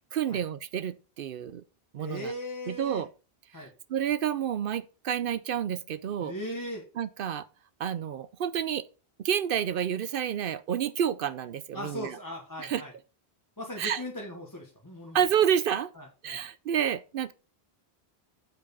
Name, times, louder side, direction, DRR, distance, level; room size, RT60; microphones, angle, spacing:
voice 1, 0.1-1.6 1.9-2.3 2.7-3.1 3.9-6.3 7.0-7.5 7.8-8.9 9.2-12.2 12.6-12.8 13.8-14.0 15.1-15.9 16.2-17.3, right 9 dB, 65° right, 0.7 m, -29 dB
voice 2, 2.0-3.1 3.5-3.7 6.2-6.9 11.7-12.9 13.6-15.2 15.9-16.4, equal, 20° left, 1.3 m, -38 dB
7.6 x 4.6 x 5.3 m
omnidirectional pair, 1.1 m